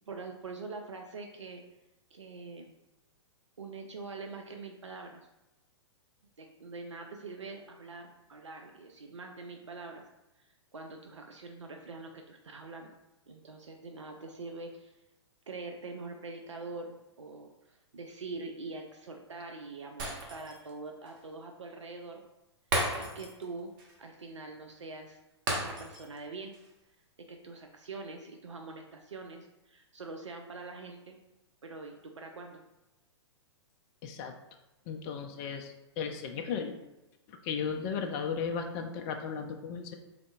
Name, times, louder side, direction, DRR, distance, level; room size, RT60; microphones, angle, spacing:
voice 1, 0.1-1.6 2.1-2.8 3.6-5.3 6.4-10.0 10.4-12.9 13.3-15.0 15.5-22.2 23.0-23.7 24.0-25.2 25.5-26.6 27.3-31.2 31.6-32.6, right 3 dB, 90° right, 3 dB, 0.4 m, -44 dB
Shatter, 20.0-20.7 21.1-21.2 22.7-23.5 23.8-23.9 25.5-26.2 26.5-26.7, right 1 dB, 45° right, 1.0 m, -34 dB
voice 2, 34.0-34.3 34.9-36.8 37.3-39.9, left 6 dB, 35° left, 4 dB, 0.4 m, -35 dB
3.7 x 3.4 x 2.3 m, 0.98 s
figure-of-eight pair, 115°, 15 cm